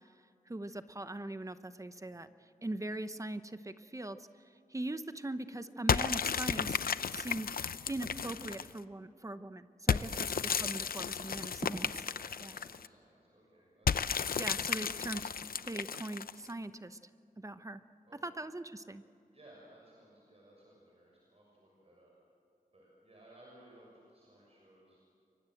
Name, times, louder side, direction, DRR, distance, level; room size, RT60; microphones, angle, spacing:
voice 1, 0.5-2.3 2.6-4.2 4.7-6.8 7.1-7.5 7.9-10.1 10.6-11.9 12.4-12.5 14.4-15.2 15.7-17.0 17.4-17.8 18.2-19.0, right 1 dB, 20° right, 11 dB, 0.9 m, -40 dB
sound 1, 5.9-8.8 9.9-12.9 13.9-16.5, left 7 dB, 90° left, 0.6 m, -33 dB
voice 2, 9.9-10.4 11.7-14.5 18.0-18.4 19.3-22.1 22.7-25.1, right 1 dB, 45° right, -4 dB, 6.7 m, -60 dB
29.0 x 23.5 x 7.9 m, 2.6 s
wide cardioid pair, 110°, 15 cm